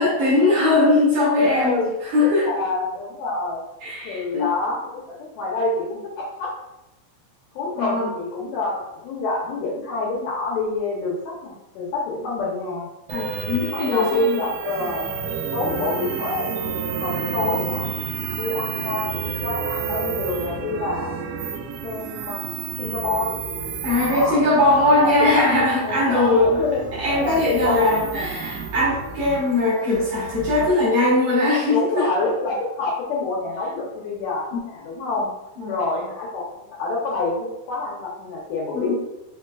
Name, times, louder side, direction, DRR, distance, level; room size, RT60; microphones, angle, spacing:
voice 1, 0.0-1.8 2.1-2.5 3.8-4.5 7.8-8.1 13.1-14.4 18.1-18.4 23.8-26.6 27.0-32.1 34.5-34.6 35.6-35.7 38.7-39.0, left 2 dB, 65° right, -6 dB, 2.1 m, -20 dB
voice 2, 1.5-1.9 2.2-3.6 4.0-6.5 7.5-12.9 13.7-15.1 15.5-16.7 17.0-17.9 18.4-21.1 21.8-22.4 22.8-23.4 23.9-24.4 25.0-25.4 25.8-26.8 27.2-28.5 31.7-35.3 35.7-39.0, left 2 dB, 85° left, -4 dB, 1.6 m, -27 dB
sound 1, 13.1-30.7, right 6 dB, 85° right, 2.4 m, -31 dB
5.6 x 3.2 x 2.3 m, 0.94 s
omnidirectional pair, 4.3 m